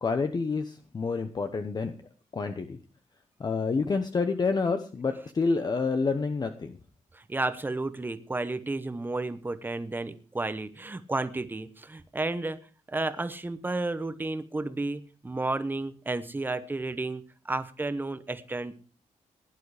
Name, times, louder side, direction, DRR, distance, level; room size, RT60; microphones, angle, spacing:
voice 1, 0.0-1.9 2.3-2.8 3.4-6.8, left 4 dB, 30° left, 7 dB, 1.0 m, -28 dB
voice 2, 7.1-12.6 12.9-18.7, right 2 dB, 15° right, 12 dB, 1.0 m, -32 dB
16.5 x 11.0 x 4.9 m, 0.38 s
wide cardioid pair, 155°, 13 cm